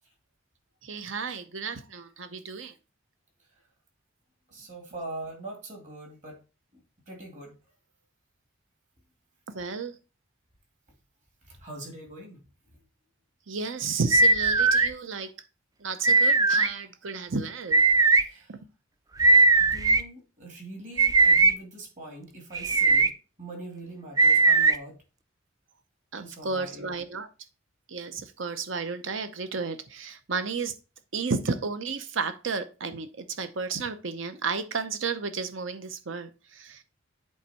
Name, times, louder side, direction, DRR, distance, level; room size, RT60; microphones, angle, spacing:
voice 1, 0.8-2.7 9.5-10.0 13.5-15.3 15.8-17.8 18.5-18.6 26.1-27.3 27.9-30.7 31.1-36.8, right 4 dB, 65° right, 0.8 m, -32 dB
voice 2, 4.5-6.4 7.1-7.5 11.5-12.4 18.2-18.5 19.6-23.1 23.4-25.0 26.2-26.9, right 2 dB, 40° right, 2.6 m, -42 dB
sound 1, 14.1-14.9 16.0-16.7 17.7-18.2 19.2-20.0 21.0-21.5 22.5-23.1 24.2-24.7, right 3 dB, 20° right, 0.3 m, -19 dB
8.1 x 3.5 x 4.3 m
head